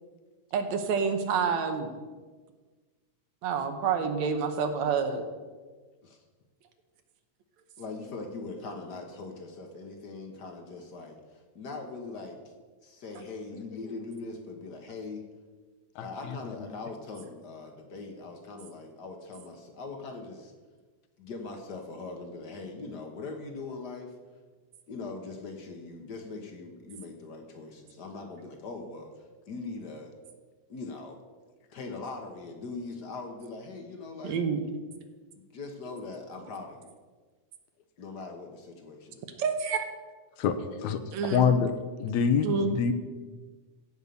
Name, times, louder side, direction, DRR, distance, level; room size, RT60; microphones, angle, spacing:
voice 1, 0.5-1.9 3.4-5.2 34.2-34.6 39.4-39.8 41.1-41.5 42.4-42.7, right 6 dB, 70° right, 7 dB, 2.2 m, -28 dB
voice 2, 7.8-12.4 12.8-15.2 16.0-20.5 21.2-24.1 24.9-29.1 29.5-30.1 30.7-31.2 31.7-34.4 35.5-36.9 38.0-39.4, left 3 dB, 55° left, 3 dB, 1.1 m, -41 dB
voice 3, 16.0-16.4 40.4-40.6 40.8-41.7 42.0-42.9, left 7 dB, 75° left, 9 dB, 2.0 m, -26 dB
15.5 x 5.4 x 6.9 m, 1.4 s
omnidirectional pair, 3.4 m